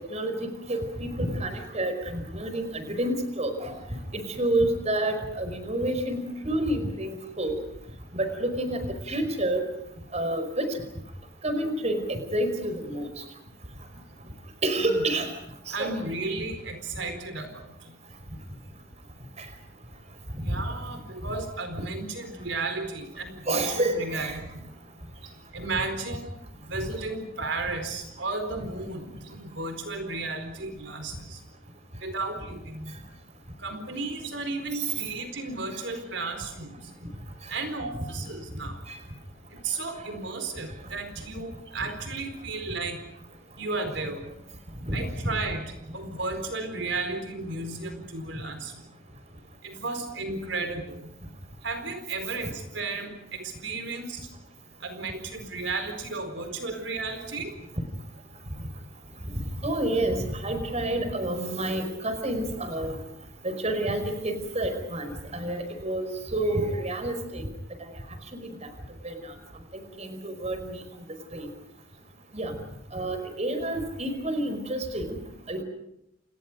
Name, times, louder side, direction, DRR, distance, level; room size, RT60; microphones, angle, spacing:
voice 1, 0.1-3.8 4.1-7.6 8.1-9.6 10.1-10.8 11.4-13.2 14.6-15.3 15.7-15.9 19.4-19.5 20.5-20.6 21.7-21.9 23.5-24.4 34.7-34.9 38.9-39.0 44.8-45.0 59.6-63.0 63.4-67.5 67.8-67.9 68.3-68.5 69.0-69.3 69.7-70.8 71.3-71.5 72.3-72.5 72.9-75.2 75.5-75.6, right 1 dB, 35° right, 8 dB, 5.1 m, -29 dB
voice 2, 14.7-15.0 15.7-17.6 20.4-24.7 25.5-26.2 26.7-31.4 32.0-33.0 33.6-36.8 37.5-38.8 39.6-43.0 43.6-44.3 44.9-45.7 45.9-48.7 49.6-51.0 51.6-54.2 54.8-57.5, right 3 dB, 75° right, 7 dB, 4.4 m, -34 dB
29.5 x 29.5 x 5.2 m, 0.78 s
head